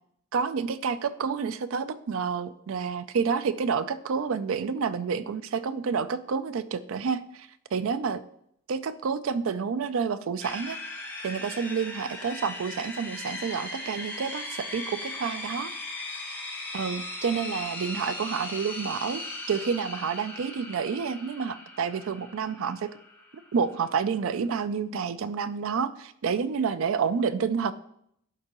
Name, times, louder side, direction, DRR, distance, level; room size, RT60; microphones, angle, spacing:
voice 1, 0.3-8.2 8.7-10.8 11.2-15.7 16.7-19.2 19.5-22.9 23.5-27.7, right 6 dB, 65° right, 14 dB, 0.4 m, -29 dB
sound 1, 10.4-24.4, left 2 dB, 10° left, 0.9 m, -38 dB
11.0 x 3.8 x 2.9 m, 0.70 s
head